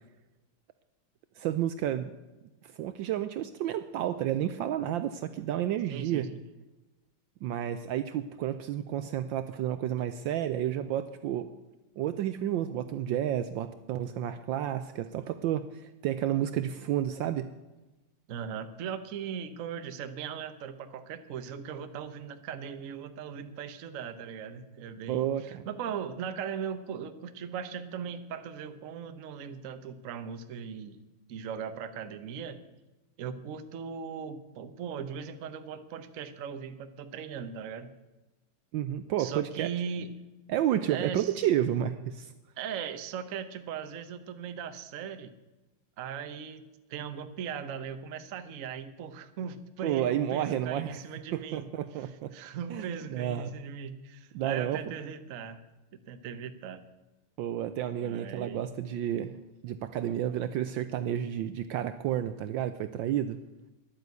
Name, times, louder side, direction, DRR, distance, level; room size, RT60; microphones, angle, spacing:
voice 1, 1.4-2.1 2.6-6.3 7.4-11.5 12.0-17.5 25.1-25.7 38.7-39.7 40.5-42.3 49.8-51.0 51.3-52.3 52.7-53.5 54.3-54.8 57.4-59.3 59.6-63.4, right 11 dB, 75° right, 11 dB, 1.2 m, -31 dB
voice 2, 5.9-6.4 18.3-31.0 31.3-32.6 33.2-37.9 39.2-40.2 40.9-41.3 42.6-45.3 46.0-46.6 46.9-51.7 52.0-55.6 56.1-56.8 58.0-58.7, right 7 dB, 55° right, 10 dB, 0.9 m, -39 dB
11.0 x 9.1 x 8.2 m, 1.1 s
omnidirectional pair, 2.4 m